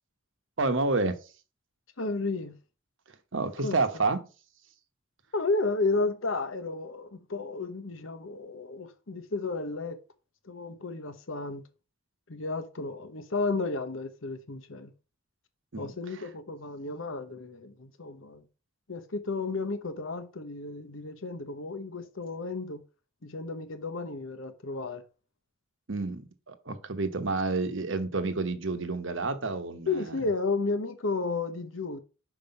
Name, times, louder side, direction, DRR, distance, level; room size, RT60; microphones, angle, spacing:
voice 1, 0.6-1.2 3.3-4.2 15.7-15.9 25.9-30.2, right 3 dB, 60° right, 1.0 m, -29 dB
voice 2, 2.0-2.6 3.6-3.8 5.3-10.0 10.4-11.6 12.3-14.9 15.8-18.4 18.9-22.8 23.2-25.0 29.9-32.0, left 3 dB, 70° left, 1.0 m, -32 dB
5.9 x 5.0 x 5.3 m
head